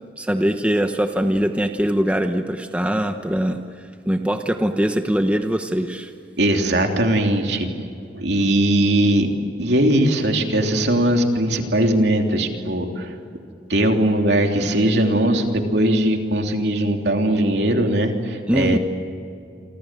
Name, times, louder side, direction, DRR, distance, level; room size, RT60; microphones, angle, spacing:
voice 1, 0.2-3.6 4.1-6.1 18.5-18.8, equal, 5° right, 6 dB, 1.0 m, -22 dB
voice 2, 6.4-7.7 8.1-9.3 9.6-13.1 13.7-18.8, right 1 dB, 65° right, 3 dB, 3.2 m, -19 dB
28.5 x 25.5 x 7.6 m, 2.5 s
head